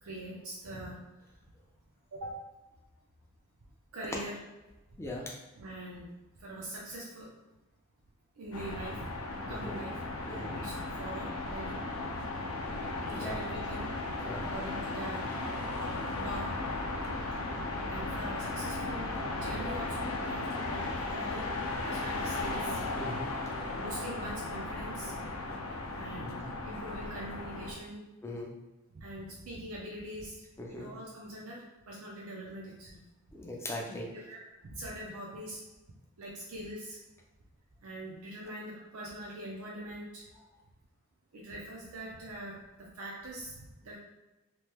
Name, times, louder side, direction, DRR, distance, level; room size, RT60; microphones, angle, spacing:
voice 1, 0.0-1.0 1.3-1.4 2.1-2.4 3.9-4.4 5.5-6.1 6.4-7.3 8.4-9.1 9.5-11.8 13.0-13.9 14.4-15.3 15.6-15.9 16.2-16.5 17.9-22.8 23.7-25.1 25.9-28.0 28.9-30.4 30.7-33.0 34.1-35.6 36.2-37.0 37.8-40.2 41.3-44.0, right 1 dB, 80° right, -4 dB, 0.5 m, -43 dB
voice 2, 5.0-5.3 9.6-9.7 10.3-10.6 13.1-13.4 14.2-14.4 23.0-23.3 26.2-26.5 28.2-28.5 30.6-30.9 33.3-34.1, left 1 dB, 10° left, -1 dB, 0.4 m, -39 dB
sound 1, 8.5-27.7, left 2 dB, 70° left, 0.5 m, -36 dB
2.9 x 2.1 x 3.3 m, 1.1 s
head